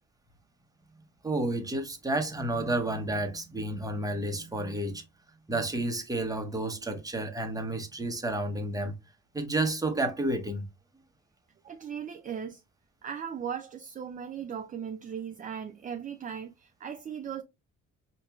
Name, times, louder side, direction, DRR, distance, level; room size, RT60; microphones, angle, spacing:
voice 1, 1.2-5.0 5.5-8.9 9.3-10.7, right 2 dB, 10° right, 0.8 m, -31 dB
voice 2, 11.6-12.6 13.0-17.4, right 8 dB, 25° right, 0.3 m, -38 dB
4.5 x 2.9 x 2.2 m
cardioid pair, 90°, 30 cm